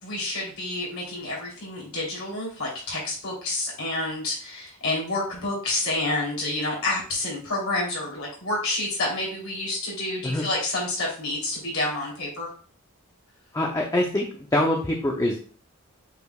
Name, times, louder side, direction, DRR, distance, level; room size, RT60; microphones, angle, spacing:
voice 1, 0.0-12.5, left 2 dB, 75° left, -4 dB, 3.4 m, -29 dB
voice 2, 13.5-15.4, left 1 dB, 15° left, 0 dB, 0.7 m, -24 dB
8.1 x 4.8 x 2.4 m, 0.41 s
head